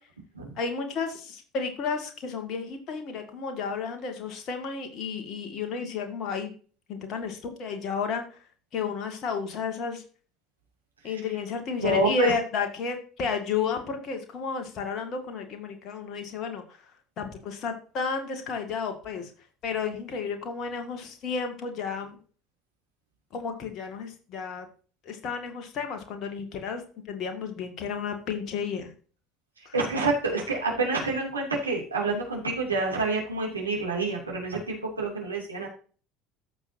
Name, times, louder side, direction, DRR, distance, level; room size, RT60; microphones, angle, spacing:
voice 1, 0.6-6.5 6.9-8.4 8.7-10.0 11.0-16.6 17.2-19.3 19.6-22.2 23.3-24.7 25.0-28.9 29.7-29.8, left 5 dB, 45° left, 5 dB, 2.1 m, -32 dB
voice 2, 11.8-12.3 29.6-35.7, right 2 dB, 85° right, -2 dB, 2.8 m, -27 dB
14.0 x 6.1 x 2.8 m, 0.39 s
figure-of-eight pair, 65°, 0 cm